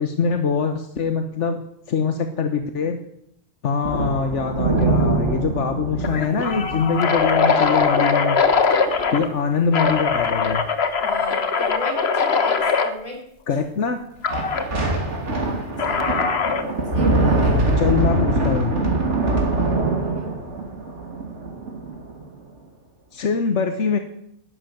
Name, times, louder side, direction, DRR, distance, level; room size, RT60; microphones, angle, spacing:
voice 1, 0.0-1.6 1.9-3.0 3.6-8.4 9.1-10.6 13.5-14.0 17.8-18.7 23.1-24.0, left 5 dB, 85° left, 7 dB, 1.5 m, -23 dB
sound 1, 3.8-8.1 8.4-8.6 9.0-9.2 9.9-10.3 14.3-22.3, right 2 dB, 90° right, 3.0 m, -23 dB
sound 2, 4.8-5.1 5.4-5.5 6.0-9.3 9.7-12.9 14.2-14.7 15.8-16.7, left 5 dB, 65° left, 1.5 m, -21 dB
voice 2, 8.7-9.1 10.9-12.0 12.2-13.2 14.7-15.0 15.8-16.3 16.9-18.0 20.0-20.4, left 2 dB, 45° left, -1 dB, 5.7 m, -37 dB
12.5 x 11.0 x 9.4 m, 0.75 s
omnidirectional pair, 1.2 m